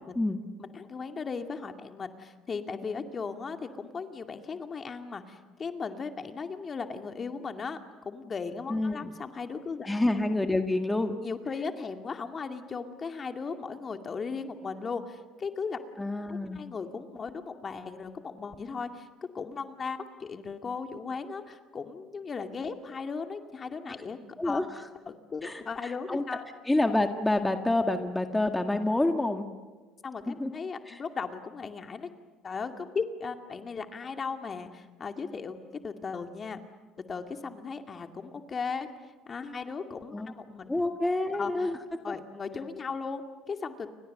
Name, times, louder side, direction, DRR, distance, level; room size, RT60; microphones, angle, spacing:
voice 1, 0.6-9.9 11.2-15.8 16.3-19.1 19.3-24.2 24.4-24.6 25.1-26.4 30.0-32.1 32.4-35.6 35.8-36.6 37.1-38.9 39.3-40.7 41.3-41.5 42.0-43.9, left 5 dB, 35° left, 6 dB, 2.3 m, -37 dB
voice 2, 8.7-9.1 9.9-11.2 16.0-16.6 24.4-24.7 25.4-26.2 26.7-29.5 30.3-30.5 30.9-31.0 40.1-40.3 40.7-41.8 42.1-42.2, left 2 dB, 10° left, 6 dB, 1.9 m, -28 dB
30.0 x 24.5 x 6.7 m, 1.3 s
hypercardioid pair, 75°, 0 cm